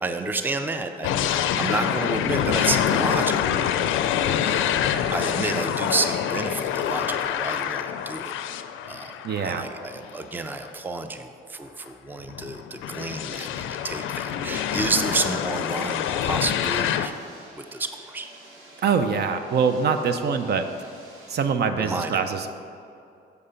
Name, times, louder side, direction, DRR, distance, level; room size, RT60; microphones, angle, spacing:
voice 1, 0.0-3.4 4.4-4.7 5.1-8.3 8.8-9.2 9.4-17.2 17.6-18.3 21.8-22.2, right 3 dB, 10° right, 7 dB, 0.4 m, -30 dB
sound 1, 1.0-10.1 10.6-10.7 12.2-17.1, left 9 dB, 80° left, 0.4 m, -26 dB
voice 2, 9.2-9.7 18.8-20.7 21.3-22.5, right 6 dB, 55° right, 9 dB, 0.5 m, -24 dB
sound 2, 15.6-21.5, right 1 dB, 85° right, 1.6 m, -50 dB
6.9 x 4.9 x 5.6 m, 2.4 s
cardioid pair, 90°, 20 cm